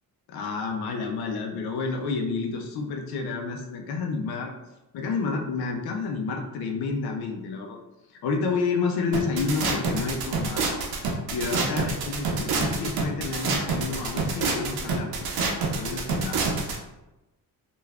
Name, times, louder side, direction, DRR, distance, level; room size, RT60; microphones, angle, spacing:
voice 1, 0.3-4.5 4.9-7.8 8.2-10.8 11.3-15.4 15.8-16.5, left 4 dB, 90° left, 3 dB, 0.5 m, -30 dB
sound 1, 9.1-16.8, right 4 dB, 80° right, 0.6 m, -27 dB
3.2 x 2.3 x 2.3 m, 0.98 s
cardioid pair, 75°, 37 cm